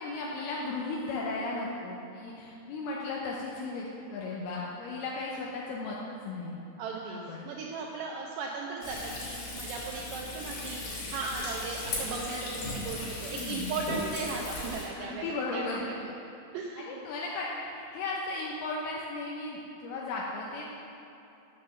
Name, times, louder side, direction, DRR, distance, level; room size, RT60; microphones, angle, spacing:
voice 1, 0.0-6.5 7.0-7.5 13.3-13.8 15.0-15.9 16.8-20.6, left 3 dB, 80° left, -3 dB, 2.2 m, -36 dB
voice 2, 6.8-10.8 11.1-15.6 16.5-17.0, right 4 dB, 80° right, -1 dB, 2.5 m, -37 dB
Frying (food), 8.8-14.9, left 2 dB, 55° left, 4.0 m, -37 dB
8.3 x 6.7 x 6.8 m, 2.7 s
omnidirectional pair, 5.5 m